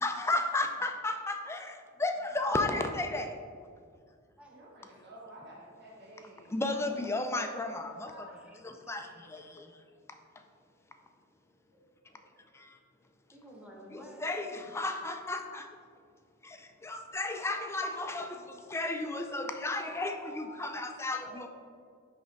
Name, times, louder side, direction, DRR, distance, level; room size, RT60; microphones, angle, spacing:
voice 1, 0.0-3.4 6.5-8.3 8.6-9.8 12.5-12.8 13.9-15.7 16.4-21.5, left 2 dB, 10° left, 5 dB, 0.4 m, -34 dB
voice 2, 4.5-6.5 11.7-12.2 12.5-12.6 19.8-21.2, right 1 dB, 50° right, -5 dB, 1.5 m, -52 dB
voice 3, 6.9-8.6 9.0-9.6 12.3-12.4 13.3-14.2 14.5-14.7 18.0-18.3 21.1-21.5, equal, 5° right, -2 dB, 1.1 m, -53 dB
10.0 x 3.4 x 4.0 m, 2.1 s
head